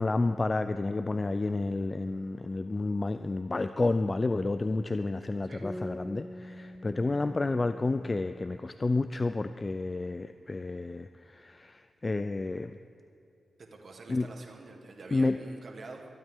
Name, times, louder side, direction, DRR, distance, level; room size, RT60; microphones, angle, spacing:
voice 1, 0.0-12.8 14.1-14.3 15.1-15.4, left 3 dB, 35° left, 10 dB, 0.4 m, -30 dB
sound 1, 5.6-9.1, left 1 dB, 15° left, 1.9 m, -44 dB
voice 2, 13.6-16.1, right 3 dB, 60° right, 1 dB, 2.1 m, -47 dB
24.5 x 9.1 x 3.7 m, 2.8 s
supercardioid pair, 40°, 0 cm